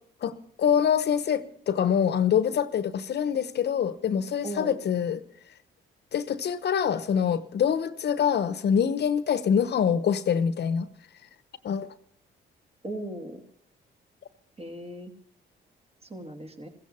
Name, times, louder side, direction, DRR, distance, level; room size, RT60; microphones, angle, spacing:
voice 1, 0.2-5.2 6.1-10.9 11.6-11.9, left 8 dB, 55° left, 13 dB, 1.0 m, -25 dB
voice 2, 4.4-4.8 12.8-13.4 14.6-15.1 16.1-16.7, right 1 dB, 30° right, 4 dB, 2.6 m, -37 dB
16.0 x 15.0 x 5.4 m, 0.65 s
cardioid pair, 90°, 20 cm